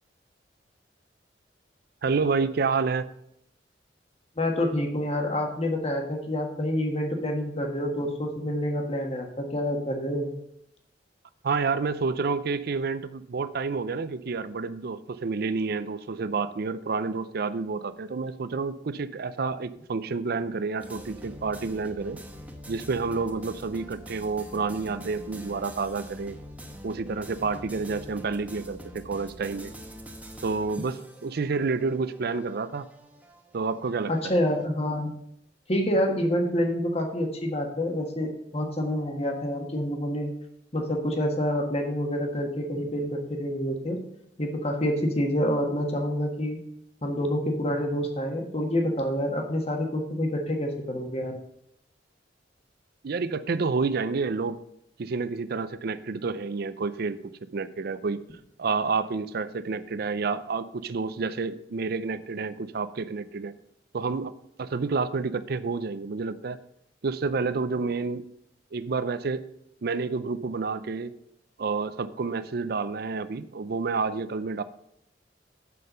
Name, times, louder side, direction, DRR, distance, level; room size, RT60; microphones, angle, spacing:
voice 1, 2.0-3.0 11.4-22.2 22.7-26.4 26.8-29.7 30.4-31.0 31.2-32.9 33.5-34.2 53.0-54.6 55.0-57.2 57.5-58.2 58.6-63.5 63.9-64.3 64.6-66.6 67.0-68.2 68.7-69.4 69.8-71.1 71.6-74.6, right 4 dB, 55° right, 13 dB, 0.5 m, -29 dB
voice 2, 4.4-10.3 34.1-35.1 35.7-40.3 40.7-44.0 44.4-46.6 47.0-51.3, equal, 35° left, 3 dB, 1.4 m, -27 dB
sound 1, 20.8-34.7, equal, 10° right, 1.1 m, -45 dB
7.6 x 5.7 x 6.6 m, 0.75 s
head